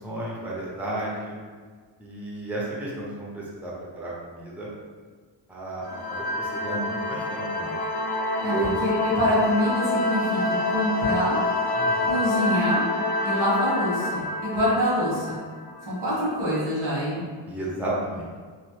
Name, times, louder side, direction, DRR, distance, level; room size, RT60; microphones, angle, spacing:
voice 1, 0.0-1.4 2.0-4.7 5.5-7.8 8.5-8.7 11.7-12.1 14.5-14.6 17.5-18.3, right 1 dB, 5° right, -5 dB, 0.6 m, -33 dB
sound 1, 5.8-16.2, left 2 dB, 55° left, 0.5 m, -27 dB
voice 2, 8.4-11.4 12.0-12.9 13.2-15.4 15.9-17.2, left 1 dB, 80° right, -8 dB, 1.4 m, -25 dB
3.1 x 2.1 x 3.1 m, 1.5 s
wide cardioid pair, 80°, 46 cm